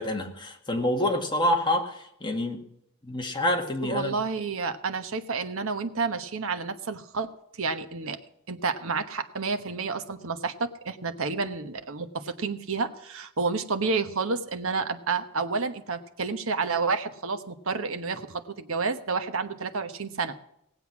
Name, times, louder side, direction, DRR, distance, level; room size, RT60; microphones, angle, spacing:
voice 1, 0.0-2.6 3.0-4.1, left 1 dB, 20° left, 2 dB, 1.8 m, -27 dB
voice 2, 3.8-7.3 7.6-8.2 8.5-20.3, right 4 dB, 70° right, 8 dB, 1.1 m, -30 dB
18.5 x 8.0 x 6.0 m, 0.80 s
head